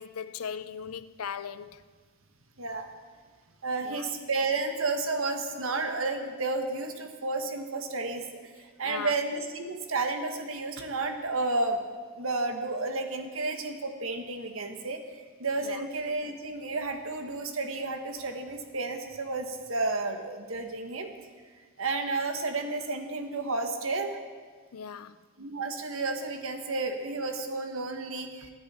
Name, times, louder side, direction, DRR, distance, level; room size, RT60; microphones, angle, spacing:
voice 1, 0.0-1.8 3.8-4.0 8.8-9.1 15.6-15.8 24.7-25.2, left 7 dB, 90° left, 0.6 m, -38 dB
voice 2, 2.6-2.9 3.6-11.8 12.1-15.0 15.4-21.1 21.8-24.2 25.4-28.5, right 3 dB, 65° right, 1.5 m, -31 dB
25.5 x 9.9 x 4.3 m
head